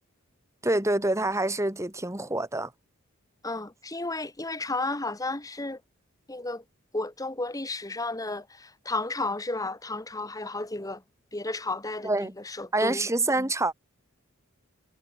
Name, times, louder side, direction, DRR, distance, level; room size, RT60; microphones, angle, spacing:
voice 1, 0.6-2.7 12.0-12.3 12.7-13.7, right 2 dB, 15° right, 2.1 m, -26 dB
voice 2, 3.4-5.8 6.3-6.6 6.9-11.0 11.3-13.1 13.4-13.5, left 2 dB, 15° left, 1.7 m, -33 dB
head